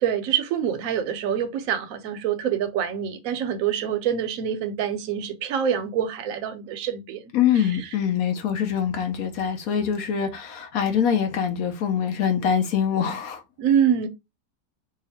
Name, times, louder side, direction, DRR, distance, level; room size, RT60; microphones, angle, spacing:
voice 1, 0.0-7.2 7.6-7.9 13.6-14.1, right 8 dB, 65° right, 0.9 m, -25 dB
voice 2, 7.3-13.4, left 8 dB, 70° left, 1.0 m, -24 dB
2.9 x 2.4 x 4.0 m
omnidirectional pair, 1.7 m